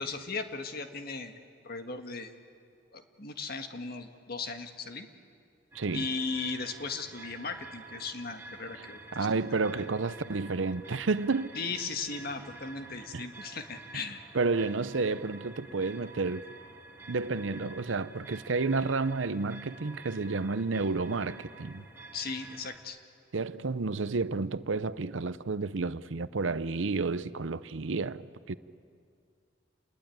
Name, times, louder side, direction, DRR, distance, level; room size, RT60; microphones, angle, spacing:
voice 1, 0.0-1.3 1.6-2.3 2.9-5.1 5.9-9.4 9.7-9.9 11.6-14.2 22.1-23.0, left 4 dB, 55° left, 1.7 m, -37 dB
sound 1, 5.7-22.8, right 2 dB, 15° right, 2.6 m, -49 dB
voice 2, 5.7-6.1 9.1-11.5 13.1-13.3 14.3-16.5 17.1-21.8 23.3-28.5, right 3 dB, 85° right, 0.7 m, -31 dB
28.5 x 21.0 x 9.3 m
head